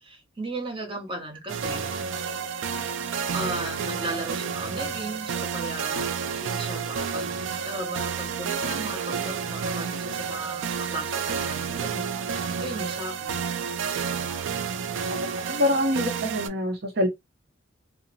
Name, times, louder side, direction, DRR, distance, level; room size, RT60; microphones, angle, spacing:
voice 1, 0.0-1.9 3.3-6.0 6.3-7.4 7.6-13.4, right 1 dB, 30° right, 0.9 m, -36 dB
sound 1, 1.5-16.5, right 6 dB, 75° right, 0.3 m, -30 dB
voice 2, 15.2-17.1, left 1 dB, 55° right, 0.7 m, -25 dB
2.8 x 2.0 x 2.7 m
head